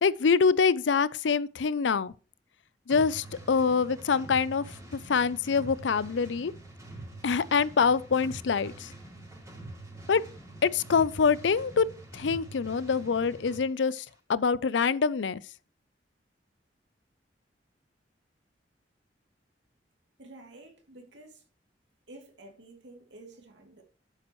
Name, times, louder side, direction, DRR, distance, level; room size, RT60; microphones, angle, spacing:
voice 1, 0.0-2.1 2.9-4.7 4.9-6.5 7.2-8.9 10.1-10.2 10.6-11.9 12.1-14.0 14.3-15.4, left 5 dB, 85° left, 0.5 m, -25 dB
sound 1, 2.9-13.6, right 2 dB, 15° right, 3.7 m, -45 dB
voice 2, 20.2-21.4 22.1-23.8, right 2 dB, 75° right, 2.8 m, -50 dB
11.5 x 8.9 x 3.1 m
head